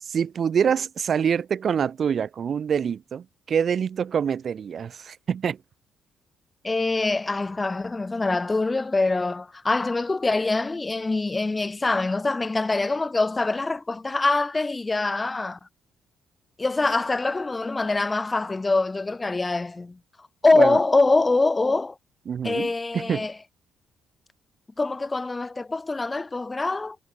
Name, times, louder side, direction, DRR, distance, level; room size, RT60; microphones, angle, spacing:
voice 1, 0.0-5.6 20.5-20.8 22.3-23.3, right 7 dB, 55° right, 0.5 m, -25 dB
voice 2, 6.6-15.6 16.6-20.0 20.4-22.0 22.4-23.3 24.8-27.0, left 3 dB, 20° left, 0.5 m, -24 dB
cardioid pair, 90°, 0 cm